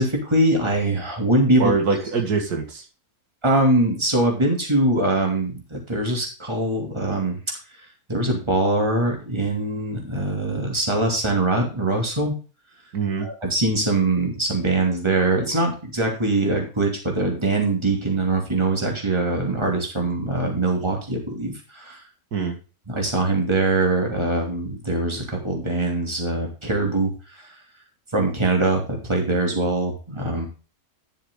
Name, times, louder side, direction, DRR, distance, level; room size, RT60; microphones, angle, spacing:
voice 1, 0.0-1.7 3.4-7.4 8.1-12.3 13.2-22.0 22.9-27.4 28.1-30.4, right 2 dB, 20° right, 1 dB, 2.7 m, -22 dB
voice 2, 1.6-2.8 12.9-13.3 22.3-22.5, right 4 dB, 85° right, 3 dB, 2.3 m, -23 dB
10.5 x 7.1 x 3.7 m, 0.34 s
omnidirectional pair, 1.6 m